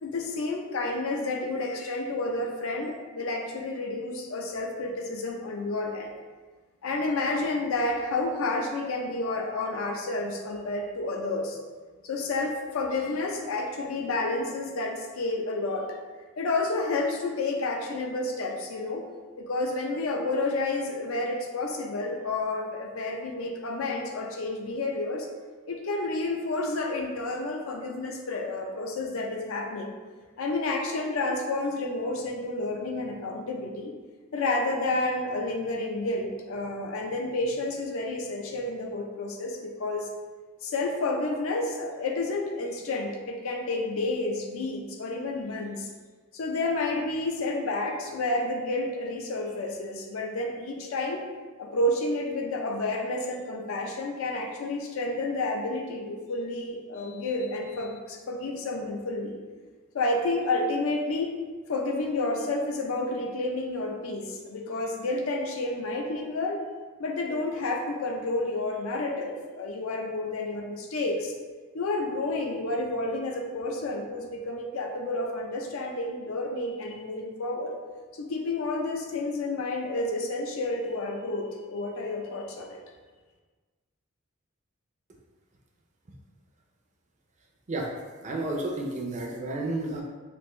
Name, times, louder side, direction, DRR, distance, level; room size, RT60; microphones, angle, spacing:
voice 1, 0.0-6.1 6.8-11.6 12.0-16.0 16.4-19.0 19.4-25.3 25.7-29.9 30.4-33.9 34.3-40.1 40.6-45.9 46.3-51.3 51.6-59.4 59.9-61.4 61.7-66.7 67.0-71.3 71.7-77.8 78.1-82.8, left 2 dB, 70° left, 1 dB, 0.5 m, -30 dB
voice 2, 88.2-90.0, right 2 dB, 35° right, 0 dB, 0.5 m, -31 dB
3.3 x 2.5 x 3.0 m, 1.4 s
head